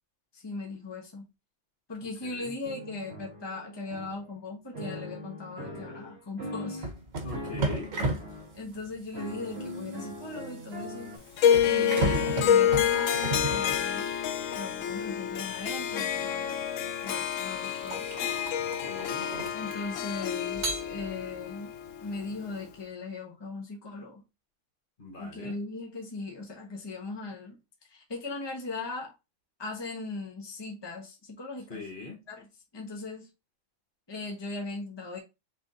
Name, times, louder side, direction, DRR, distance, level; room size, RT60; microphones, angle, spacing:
voice 1, 0.3-1.3 1.9-6.9 8.5-11.1 11.6-14.0 14.5-16.7 17.0-18.1 19.5-21.7 22.0-24.2 25.2-27.6 27.9-29.1 29.6-31.8 32.3-33.3 34.1-35.2, left 3 dB, 20° left, 1.2 m, -39 dB
voice 2, 2.2-2.5 7.2-7.9 18.6-19.3 25.0-25.5 31.7-32.2, left 4 dB, 45° left, 1.3 m, -41 dB
sound 1, 2.6-4.4 4.7-7.0 7.3-8.6 9.1-11.2, left 1 dB, 50° right, 1.7 m, -41 dB
sound 2, 6.8-14.4 15.8-16.0 16.7-20.0 20.5-21.4, right 2 dB, 90° right, 1.5 m, -35 dB
Harp, 11.4-22.7, left 9 dB, 80° left, 1.0 m, -28 dB
5.8 x 3.5 x 2.6 m
omnidirectional pair, 1.3 m